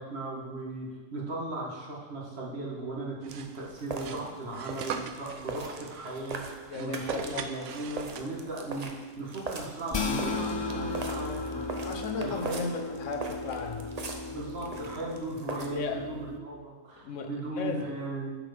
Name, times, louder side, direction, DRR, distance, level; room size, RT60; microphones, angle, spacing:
voice 1, 0.0-11.7 12.2-12.7 14.3-18.3, right 2 dB, 55° right, -3 dB, 1.9 m, -37 dB
sound 1, 3.2-8.6, right 7 dB, 75° right, 0.9 m, -41 dB
sound 2, 3.3-15.7, right 3 dB, 35° right, 0.7 m, -41 dB
voice 2, 6.7-7.4 11.8-13.9 15.7-16.1 17.0-17.3 17.6-17.9, left 5 dB, 75° left, 5 dB, 1.2 m, -35 dB
sound 3, 9.9-16.4, left 3 dB, 40° left, 0.3 m, -35 dB
7.8 x 6.6 x 5.0 m, 1.3 s
omnidirectional pair, 1.3 m